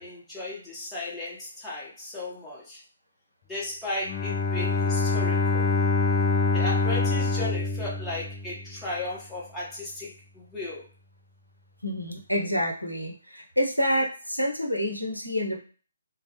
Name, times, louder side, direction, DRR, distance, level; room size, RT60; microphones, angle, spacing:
voice 1, 0.0-2.8 3.5-5.7 6.5-10.9, left 2 dB, 5° left, -7 dB, 0.8 m, -35 dB
Bowed string instrument, 4.1-8.8, left 3 dB, 30° left, 0.4 m, -25 dB
voice 2, 11.8-15.6, equal, 90° left, 0 dB, 0.6 m, -28 dB
2.1 x 2.1 x 2.8 m, 0.38 s
figure-of-eight pair, 140°, 0 cm